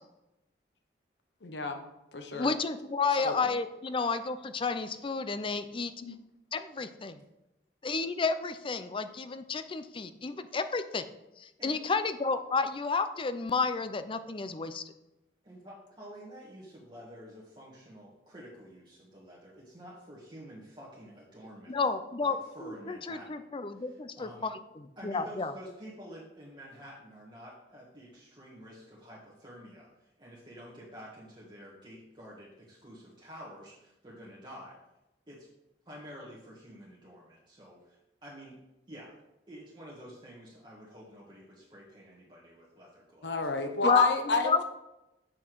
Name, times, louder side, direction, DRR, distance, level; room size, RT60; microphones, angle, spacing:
voice 1, 1.4-1.8 2.1-2.5 3.2-3.4 6.0-6.2 43.2-44.6, left 3 dB, 75° left, 6 dB, 0.9 m, -30 dB
voice 2, 2.4-5.9 6.5-7.2 7.8-11.0 11.4-14.8 21.7-25.5 43.8-44.6, left 4 dB, 30° left, 11 dB, 0.5 m, -31 dB
voice 3, 15.4-21.7 22.2-24.4 25.0-34.8 35.3-35.5 35.8-38.6 38.9-39.2 39.5-43.3, equal, 25° right, -6 dB, 1.5 m, -49 dB
7.8 x 5.9 x 4.6 m, 0.93 s
head